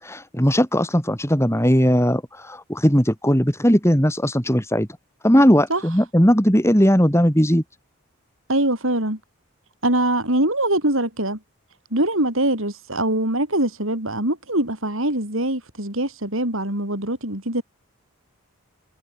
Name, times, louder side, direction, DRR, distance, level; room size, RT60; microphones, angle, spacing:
voice 1, 0.0-4.9 5.2-7.6, equal, 10° left, 5.2 m, -18 dB
voice 2, 8.5-9.2 9.8-11.4 11.9-17.6, right 1 dB, 65° right, 7.4 m, -23 dB
head